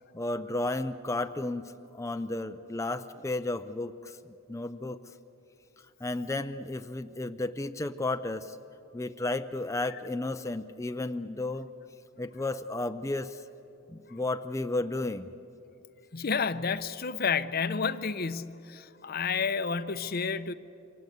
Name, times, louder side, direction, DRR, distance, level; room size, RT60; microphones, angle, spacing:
voice 1, 0.1-5.0 6.0-8.6 8.9-11.7 12.2-13.4 13.9-15.3, left 2 dB, 15° left, 0.5 m, -33 dB
voice 2, 16.1-20.5, left 5 dB, 50° left, 0.7 m, -30 dB
28.0 x 24.5 x 8.1 m
head